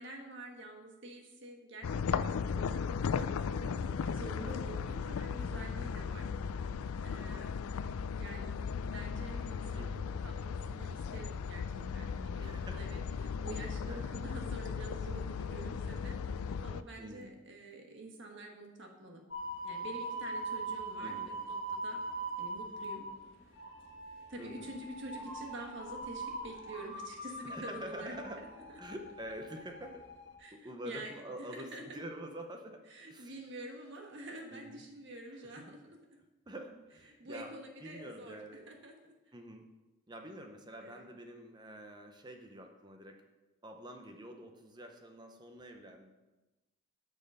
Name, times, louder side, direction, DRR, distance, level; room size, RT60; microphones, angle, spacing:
voice 1, 0.0-3.7 4.0-6.3 7.0-7.6 8.1-8.6 8.9-19.2 19.6-22.0 22.4-23.1 24.3-28.2 28.5-28.8 30.4-31.1 31.4-32.0 32.9-36.0 37.2-39.1 40.8-41.0, right 1 dB, 55° right, 2 dB, 1.5 m, -47 dB
sound 1, 1.8-16.8, left 6 dB, 85° left, 0.4 m, -36 dB
voice 2, 3.6-4.1 9.7-10.1 12.4-12.8 13.9-14.0 17.0-17.4 21.0-21.4 24.4-24.7 27.4-28.4 28.8-30.0 30.5-32.8 33.1-33.3 34.5-34.8 35.4-35.7 36.5-37.5 37.8-38.7 39.3-39.7 40.1-43.2 43.6-46.1, equal, 20° right, 5 dB, 0.7 m, -47 dB
sound 2, 19.3-30.4, right 2 dB, 60° left, 1.8 m, -42 dB
8.5 x 6.4 x 5.5 m, 1.1 s
head